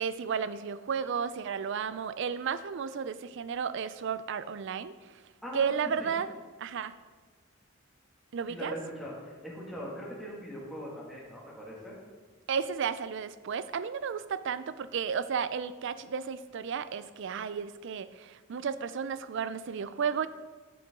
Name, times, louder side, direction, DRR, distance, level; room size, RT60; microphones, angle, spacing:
voice 1, 0.0-4.9 5.5-6.3 6.6-6.9 8.3-8.7 12.5-20.3, right 6 dB, 65° right, 14 dB, 0.4 m, -33 dB
voice 2, 5.4-6.1 8.5-12.0, equal, ahead, -5 dB, 2.1 m, -41 dB
9.7 x 6.9 x 3.7 m, 1.4 s
head